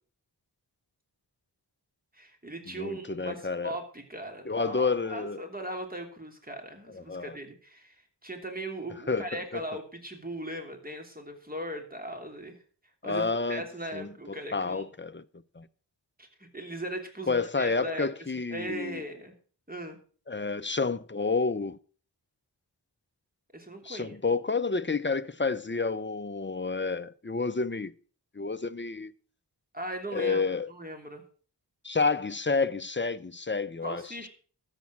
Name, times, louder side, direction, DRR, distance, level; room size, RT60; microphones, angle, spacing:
voice 1, 2.1-12.6 13.0-14.9 16.2-18.1 18.5-19.3 19.7-20.0 23.5-24.2 29.7-30.4 30.7-31.2 33.8-34.3, right 1 dB, 20° right, 2.9 m, -39 dB
voice 2, 2.7-3.8 4.4-5.4 6.9-7.4 9.1-9.6 13.0-13.6 13.9-15.2 15.6-15.7 17.3-19.0 20.3-21.8 23.8-27.9 28.3-29.1 30.1-30.7 31.8-34.3, left 4 dB, 25° left, 0.7 m, -30 dB
13.0 x 7.5 x 6.0 m
wide cardioid pair, 40°, 42 cm